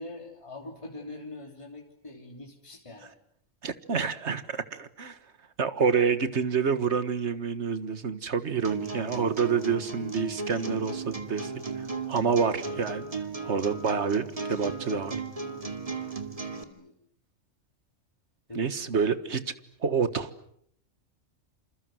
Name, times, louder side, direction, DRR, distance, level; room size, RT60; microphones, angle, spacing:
voice 1, 0.0-3.1 16.5-16.9 18.5-18.6, left 2 dB, 25° left, 1 dB, 3.3 m, -43 dB
voice 2, 3.6-5.2 5.6-13.0 13.4-15.2 18.6-19.5 19.8-20.3, right 6 dB, 60° right, 13 dB, 1.8 m, -28 dB
sound 1, 8.6-16.6, right 4 dB, 25° right, 2.4 m, -35 dB
28.0 x 27.5 x 7.7 m, 0.69 s
omnidirectional pair, 1.3 m